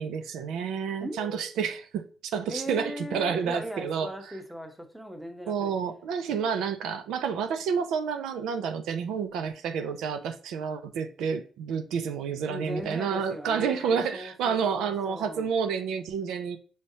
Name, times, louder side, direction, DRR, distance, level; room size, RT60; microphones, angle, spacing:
voice 1, 0.0-4.1 5.5-16.6, right 6 dB, 85° right, 0.5 m, -29 dB
voice 2, 1.0-1.6 2.5-5.7 12.5-15.5, equal, 5° right, 0.9 m, -39 dB
5.6 x 3.1 x 2.7 m
cardioid pair, 90°, 0 cm